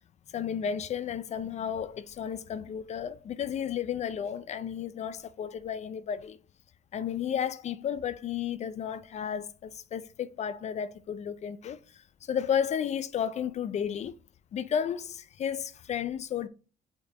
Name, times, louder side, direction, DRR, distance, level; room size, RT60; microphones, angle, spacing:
voice 1, 0.3-6.4 6.9-14.2 14.5-16.5, left 8 dB, 40° left, 0.4 m, -33 dB
5.7 x 4.3 x 4.1 m
cardioid pair, 110°, 17 cm